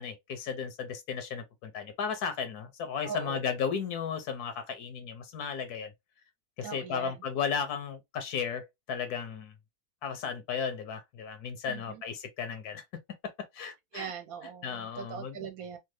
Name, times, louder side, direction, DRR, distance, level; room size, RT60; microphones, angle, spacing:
voice 1, 0.0-5.9 6.6-9.5 10.0-12.8 13.2-14.1 14.6-15.5, left 6 dB, 80° left, 1.2 m, -35 dB
voice 2, 3.0-3.4 6.6-7.2 11.7-12.0 13.6-15.8, right 7 dB, 70° right, 1.0 m, -41 dB
3.1 x 2.3 x 3.1 m
omnidirectional pair, 1.6 m